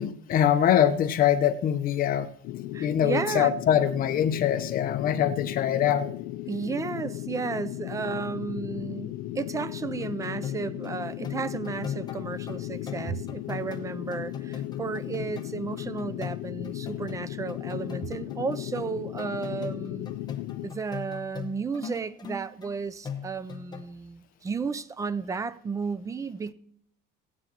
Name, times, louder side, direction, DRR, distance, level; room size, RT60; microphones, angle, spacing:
voice 1, 0.0-2.3 2.8-6.1, left 10 dB, 45° left, 0.8 m, -23 dB
sound 1, 2.4-20.7, left 15 dB, 80° left, 0.4 m, -36 dB
voice 2, 2.7-3.6 6.5-20.1 20.6-26.5, right 5 dB, 15° right, 0.4 m, -33 dB
sound 2, 10.0-22.8 23.0-23.8, left 6 dB, 20° left, 1.0 m, -40 dB
16.5 x 9.8 x 2.9 m
cardioid pair, 135°, 20 cm